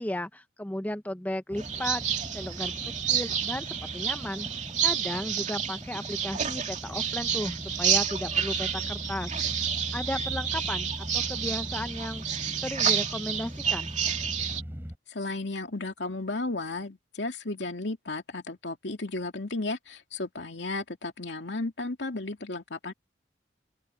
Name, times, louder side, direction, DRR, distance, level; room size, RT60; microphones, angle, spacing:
voice 1, 0.0-2.0 2.3-2.8 3.1-3.7 3.9-4.5 4.8-9.3 9.9-12.2 12.6-13.9, left 1 dB, 10° left, 0.7 m, -34 dB
sound 1, 1.5-15.0, equal, 10° right, 4.6 m, -40 dB
sound 2, 1.6-14.6, right 8 dB, 45° right, 2.6 m, -30 dB
voice 2, 15.1-22.9, left 2 dB, 75° left, 2.7 m, -34 dB
open air
head